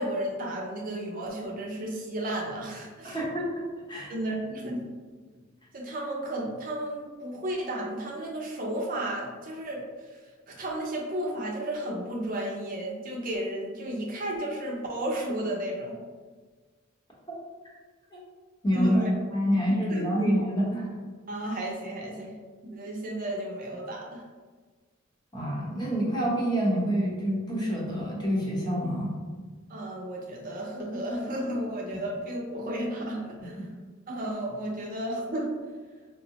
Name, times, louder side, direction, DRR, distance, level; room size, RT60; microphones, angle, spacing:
voice 1, 0.0-3.2 4.1-4.9 5.7-9.8 10.1-10.2 10.5-16.0 18.7-19.1 19.5-19.6 19.9-20.3 21.3-24.2 29.7-33.7 34.1-35.6, right 1 dB, 40° right, -2 dB, 0.5 m, -33 dB
voice 2, 3.0-3.6 3.9-4.1 18.1-18.2 18.6-19.0 19.3-20.9 25.3-29.2 33.4-33.5, equal, 20° left, -5 dB, 0.8 m, -27 dB
4.4 x 2.0 x 2.8 m, 1.4 s
head